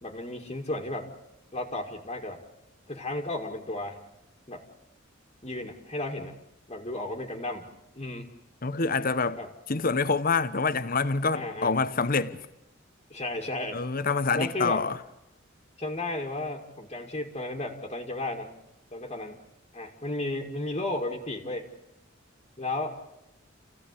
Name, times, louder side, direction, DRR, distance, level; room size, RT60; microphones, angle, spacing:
voice 1, 0.0-1.1 1.5-2.4 2.9-4.0 4.5-4.7 5.4-6.4 6.7-7.7 7.9-8.3 9.4-9.5 11.3-11.8 13.1-13.8 14.3-14.9 15.8-18.6 18.9-19.4 19.7-21.7 22.6-23.0, left 2 dB, 30° left, 2.2 m, -34 dB
voice 2, 8.6-9.4 9.7-12.4 13.7-15.0, left 4 dB, 45° left, 1.0 m, -26 dB
28.5 x 16.0 x 8.3 m
head